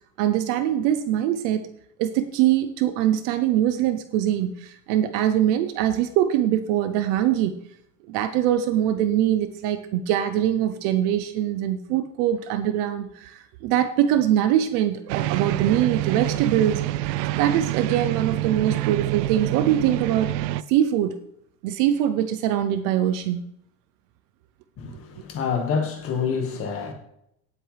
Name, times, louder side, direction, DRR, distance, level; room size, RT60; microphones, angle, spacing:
voice 1, 0.2-1.6 2.0-7.5 8.1-17.1 17.4-20.3 20.7-21.1 21.6-23.5, right 11 dB, 40° right, 0.6 m, -23 dB
sound 1, 15.1-20.6, right 15 dB, 85° right, 0.6 m, -26 dB
voice 2, 24.8-26.9, left 6 dB, 25° left, 1.7 m, -27 dB
17.5 x 8.0 x 3.3 m
supercardioid pair, 170°, 48 cm